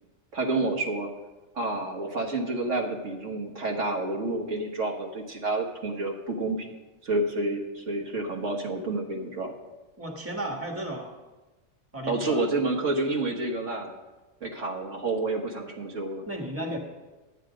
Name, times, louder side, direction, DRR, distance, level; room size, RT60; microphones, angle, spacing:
voice 1, 0.3-1.1 1.5-6.7 7.0-9.5 12.1-13.9 14.4-16.3, right 2 dB, 80° right, 1 dB, 1.8 m, -29 dB
voice 2, 10.0-11.1 11.9-12.5 16.3-16.8, right 1 dB, 10° right, 1 dB, 1.5 m, -34 dB
11.5 x 9.2 x 5.1 m, 1.2 s
omnidirectional pair, 1.3 m